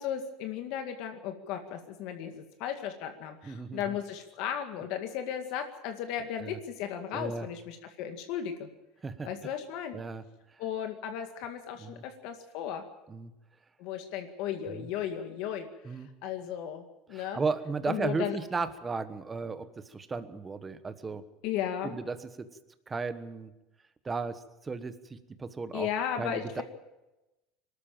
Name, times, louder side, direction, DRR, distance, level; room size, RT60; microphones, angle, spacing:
voice 1, 0.0-8.7 9.2-10.0 10.6-12.8 13.8-15.7 16.2-17.4 17.9-18.4 21.4-22.0 25.7-26.6, left 9 dB, 55° left, 6 dB, 2.0 m, -35 dB
voice 2, 3.4-4.0 6.4-6.6 7.1-7.5 9.0-9.3 9.9-10.2 11.8-12.0 13.1-13.3 14.7-14.9 15.8-16.1 17.1-21.2 21.8-22.5 22.9-23.5 24.0-25.9 26.2-26.6, right 4 dB, 15° right, 11 dB, 1.2 m, -35 dB
23.5 x 13.0 x 8.9 m, 0.99 s
cardioid pair, 160°, 0 cm